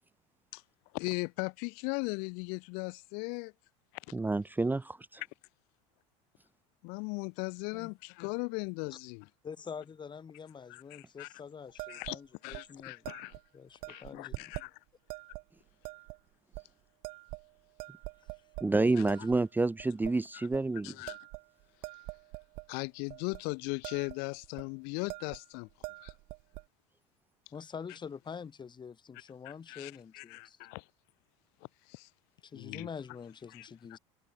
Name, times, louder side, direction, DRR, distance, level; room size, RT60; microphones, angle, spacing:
voice 1, 0.9-3.5 3.9-4.1 6.8-9.3 10.7-11.3 11.9-13.3 13.9-14.8 19.0-19.1 20.3-20.5 20.8-21.2 22.7-26.2 29.4-30.9 31.8-32.1 32.5-32.9 33.5-34.0, left 36 dB, 70° left, 1.5 m, -38 dB
voice 2, 4.1-4.8 18.6-20.9, right 3 dB, 10° right, 0.9 m, -28 dB
voice 3, 9.4-13.1 13.5-14.5 27.5-30.6 32.4-34.0, left 6 dB, 30° left, 3.8 m, -46 dB
sound 1, 11.8-12.2 12.5-12.7 13.0-13.4 13.8-14.7 15.1-15.4 15.8-16.2 16.5-16.6 17.0-17.5 17.8-18.7 19.1-19.4 19.8-20.1 20.5-20.7 21.1-22.7 23.1-23.4 23.7-24.2 24.4-24.7 25.1-25.4 25.7-26.6, right 23 dB, 65° right, 2.3 m, -44 dB
supercardioid pair, 95°, 17 cm